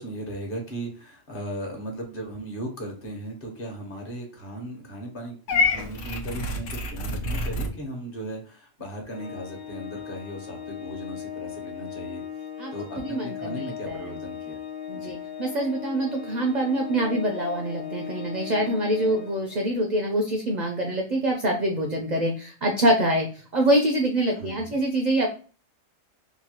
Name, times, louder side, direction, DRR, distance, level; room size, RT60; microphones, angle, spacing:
voice 1, 0.0-12.2 12.7-14.6 14.9-15.2 24.3-24.8, right 1 dB, 50° left, 1 dB, 1.0 m, -37 dB
Purr / Meow, 5.5-7.7, left 2 dB, 80° left, 0.9 m, -27 dB
Organ, 9.1-19.9, left 8 dB, 25° left, 0.5 m, -38 dB
voice 2, 12.6-14.0 14.9-25.3, right 1 dB, 65° right, 2 dB, 0.4 m, -25 dB
3.0 x 2.2 x 2.8 m, 0.39 s
omnidirectional pair, 1.3 m